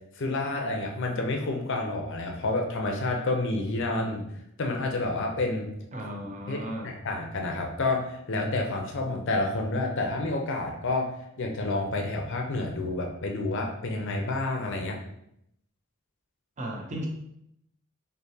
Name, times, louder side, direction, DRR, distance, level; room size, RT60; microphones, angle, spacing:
voice 1, 0.2-4.2 4.6-5.7 6.5-11.1 11.4-15.0, left 2 dB, 60° left, 2 dB, 0.6 m, -29 dB
voice 2, 5.9-6.9 16.6-17.1, right 1 dB, 35° right, 0 dB, 0.7 m, -35 dB
4.5 x 2.8 x 2.7 m, 0.76 s
head